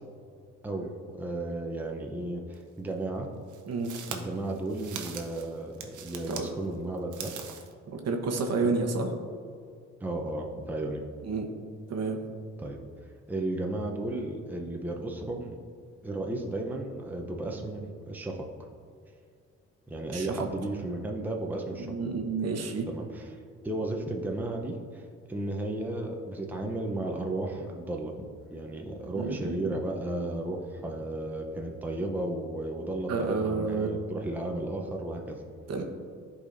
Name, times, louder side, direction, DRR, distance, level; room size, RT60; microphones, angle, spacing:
voice 1, 0.6-3.3 4.1-7.5 8.6-8.8 10.0-11.0 12.6-12.8 13.3-15.6 16.0-18.5 19.9-21.9 22.9-23.4 23.6-28.1 28.5-35.4, right 2 dB, 5° right, 1 dB, 0.6 m, -34 dB
sound 1, 2.5-2.6 3.5-6.5 7.0-7.7, right 7 dB, 80° right, 0.8 m, -41 dB
voice 2, 7.9-9.1 11.2-11.5 11.9-12.2 20.1-20.4 21.7-22.9 29.1-29.7 33.1-33.9 35.7-35.8, right 4 dB, 55° right, 3 dB, 1.0 m, -30 dB
11.0 x 4.1 x 2.6 m, 2.3 s
cardioid pair, 90°, 30 cm